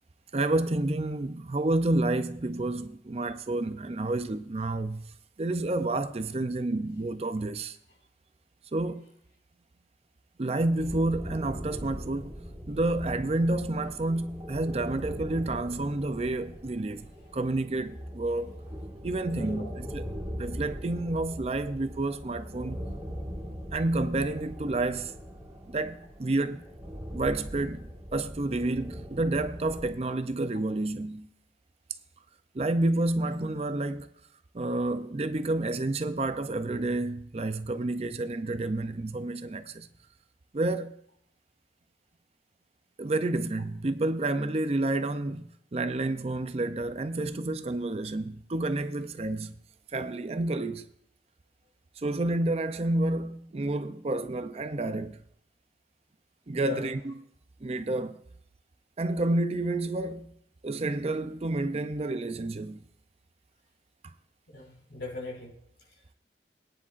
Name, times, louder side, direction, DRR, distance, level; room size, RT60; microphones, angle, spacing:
voice 1, 0.3-5.1 5.4-7.8 8.7-9.1 10.4-12.3 12.7-18.6 19.0-20.1 20.4-22.8 23.7-25.1 25.7-26.6 27.1-31.3 32.5-34.1 34.5-39.9 40.5-41.0 43.0-49.5 49.9-50.9 52.0-55.2 56.5-57.1 57.6-58.2 59.0-60.3 60.6-62.8, right 2 dB, 35° right, 0.5 m, -29 dB
sound 1, 10.8-29.9, equal, 15° right, 1.7 m, -40 dB
voice 2, 19.3-19.7 56.5-56.9 64.5-65.5, left 2 dB, 90° left, 5.2 m, -39 dB
22.0 x 9.8 x 2.5 m
head